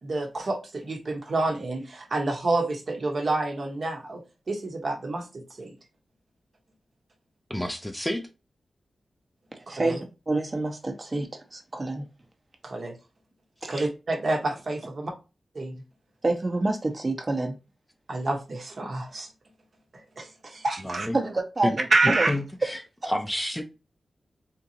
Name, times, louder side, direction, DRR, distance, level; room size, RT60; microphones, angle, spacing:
voice 1, 0.0-4.2 4.5-5.7 9.7-10.0 12.6-12.9 13.7-15.1 15.5-15.8 18.1-19.3 20.2-21.1 21.9-22.3, right 2 dB, 55° right, 1.0 m, -28 dB
voice 2, 7.5-8.3 20.8-21.2 21.6-21.8 22.0-23.6, left 1 dB, 10° left, 0.5 m, -29 dB
voice 3, 9.5-10.0 10.3-12.1 13.6-13.9 16.2-17.5 21.1-22.3, right 2 dB, 35° right, 0.9 m, -28 dB
3.7 x 2.8 x 2.7 m
wide cardioid pair, 85°, 0 cm